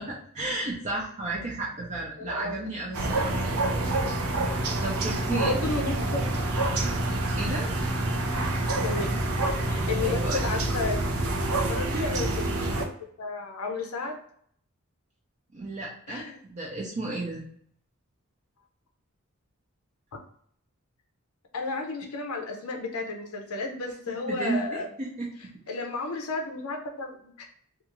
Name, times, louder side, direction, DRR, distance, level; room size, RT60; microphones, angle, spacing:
voice 1, 0.0-3.3 4.8-5.5 7.4-7.7 10.0-10.6 11.9-12.0 15.5-17.4 24.1-25.5, right 2 dB, 35° right, -3 dB, 0.5 m, -33 dB
voice 2, 2.2-2.6 5.3-6.3 8.8-9.4 9.7-11.0 11.7-12.7 13.2-14.2 16.1-16.4 21.5-24.9 25.7-27.3, left 3 dB, 90° left, 3 dB, 0.5 m, -32 dB
sound 1, 2.9-12.9, right 2 dB, 80° right, 0.5 m, -27 dB
2.4 x 2.3 x 2.9 m, 0.62 s
head